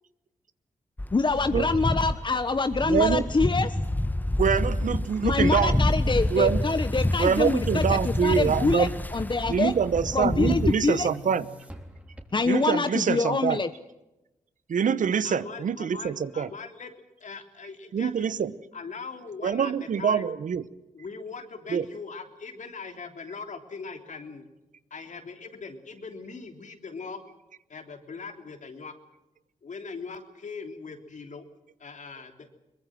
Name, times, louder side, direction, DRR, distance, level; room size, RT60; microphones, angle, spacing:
sound 1, 1.0-10.7, left 1 dB, 10° left, 1.3 m, -28 dB
voice 1, 1.1-3.8 5.2-9.7 10.1-11.1 12.3-13.7, left 3 dB, 35° left, 10 dB, 1.2 m, -25 dB
voice 2, 2.8-3.2 4.4-5.8 6.3-6.6 7.2-8.9 9.5-11.5 12.5-13.6 14.7-16.5 17.9-18.5 19.4-20.6 21.7-21.8, right 7 dB, 70° right, 16 dB, 1.0 m, -25 dB
Boom, 6.9-12.7, left 1 dB, 10° right, 3.6 m, -46 dB
voice 3, 15.2-16.9 17.2-18.2 18.7-20.3 20.9-24.4 24.9-27.2 27.7-28.9 29.6-31.5 31.8-32.5, left 4 dB, 60° left, 6 dB, 3.4 m, -40 dB
23.0 x 20.5 x 7.7 m, 0.96 s
cardioid pair, 55°, 14 cm